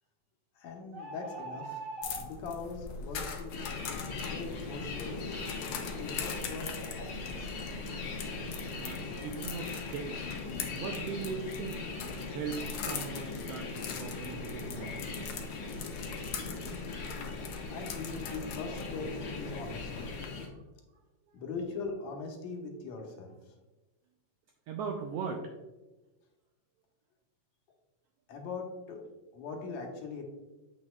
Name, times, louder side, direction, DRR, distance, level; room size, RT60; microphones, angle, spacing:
voice 1, 0.6-1.8 2.1-3.6 4.3-5.4 6.0-7.6 17.7-19.1 19.4-20.1 21.3-23.3 28.3-29.0 29.3-30.2, left 4 dB, 75° left, 2 dB, 2.3 m, -41 dB
sound 1, 0.9-2.3, right 2 dB, 50° right, 0.9 m, -41 dB
sound 2, 2.0-20.2, left 5 dB, 90° left, 1.1 m, -42 dB
sound 3, 3.5-20.5, left 4 dB, 55° left, 1.6 m, -40 dB
voice 2, 8.8-10.3 10.7-12.0 12.3-15.4 20.4-20.6 24.7-25.6, right 6 dB, 85° right, 2 dB, 1.4 m, -39 dB
7.1 x 6.4 x 2.3 m, 1.1 s
omnidirectional pair, 3.3 m